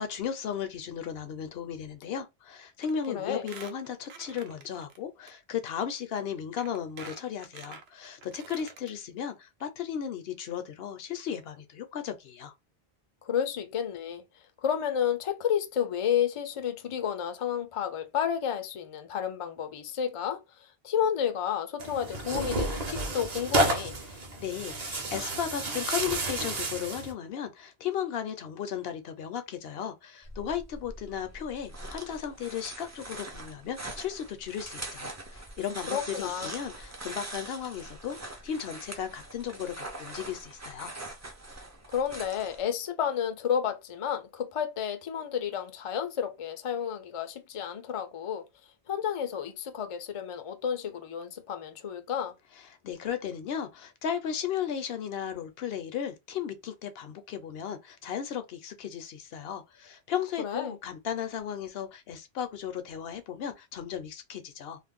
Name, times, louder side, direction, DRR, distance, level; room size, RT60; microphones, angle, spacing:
voice 1, 0.0-12.5 24.1-40.9 52.8-64.8, left 8 dB, 75° left, 0.8 m, -35 dB
Squeak, 2.8-3.1 3.4-5.0 5.3-5.4 6.2-6.3 6.6-8.9 9.3-9.4 9.6-9.7, right 6 dB, 80° right, 0.8 m, -47 dB
voice 2, 3.1-3.5 13.2-14.2 14.6-24.0 35.9-36.5 41.9-48.4 48.9-52.3 60.4-60.8, left 8 dB, 50° left, 0.4 m, -31 dB
Tearing, 21.8-27.1, right 2 dB, 45° right, 0.7 m, -31 dB
sound 1, 30.2-42.6, right 2 dB, 25° right, 0.4 m, -43 dB
2.5 x 2.0 x 3.5 m
omnidirectional pair, 1.1 m